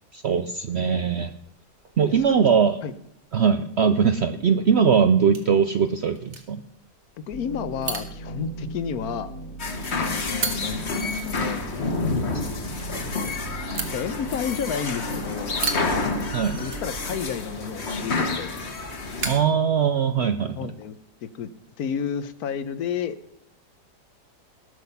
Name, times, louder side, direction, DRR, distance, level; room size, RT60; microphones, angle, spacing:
voice 1, 0.1-1.3 2.0-2.8 3.3-6.6 16.3-16.6 19.2-20.7, right 7 dB, 70° right, 10 dB, 0.6 m, -21 dB
sound 1, 0.7-20.4, right 4 dB, 45° right, 1.6 m, -39 dB
voice 2, 2.1-2.5 2.8-2.9 7.3-9.3 9.9-11.6 13.0-13.4 13.9-15.6 16.5-18.5 20.5-21.5 21.8-23.2, left 7 dB, 65° left, 14 dB, 1.2 m, -31 dB
sound 2, 7.3-17.3, right 3 dB, 90° left, 3.6 m, -38 dB
sound 3, 9.6-19.4, left 3 dB, 40° left, 1.5 m, -29 dB
19.0 x 6.3 x 5.5 m, 0.75 s
omnidirectional pair, 1.8 m